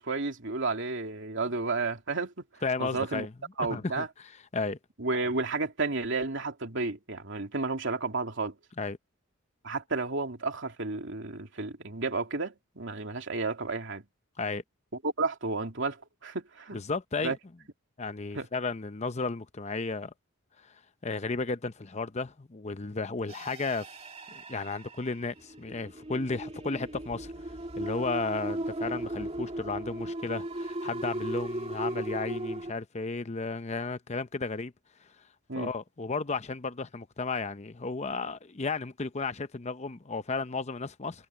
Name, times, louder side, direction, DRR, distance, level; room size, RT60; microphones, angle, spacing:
voice 1, 0.0-2.3 2.8-3.3 3.6-4.1 5.0-8.6 9.6-14.0 15.0-16.8 17.2-17.4 18.3-18.5 35.5-35.7, right 3 dB, 65° right, 2.9 m, -32 dB
voice 2, 2.6-3.3 3.7-4.8 8.8-9.0 14.4-14.6 16.7-17.3 18.0-20.1 20.6-23.9 24.3-34.7 35.0-35.2 35.5-41.3, left 3 dB, 35° left, 0.7 m, -34 dB
sound 1, 23.3-32.7, right 1 dB, 30° right, 3.0 m, -37 dB
head